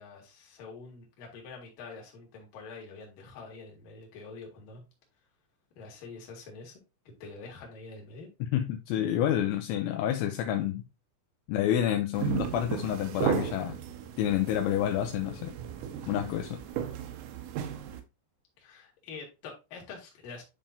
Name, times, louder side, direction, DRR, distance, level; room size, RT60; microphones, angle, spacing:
voice 1, 0.0-4.8 5.8-6.8 7.2-8.3 18.6-20.4, left 4 dB, 55° left, 2.7 m, -46 dB
voice 2, 8.4-10.8 11.5-13.8 14.2-15.5 16.1-16.6, left 11 dB, 85° left, 2.7 m, -29 dB
sound 1, 12.2-18.0, right 9 dB, 85° right, 3.4 m, -35 dB
10.0 x 3.7 x 2.7 m
omnidirectional pair, 6.0 m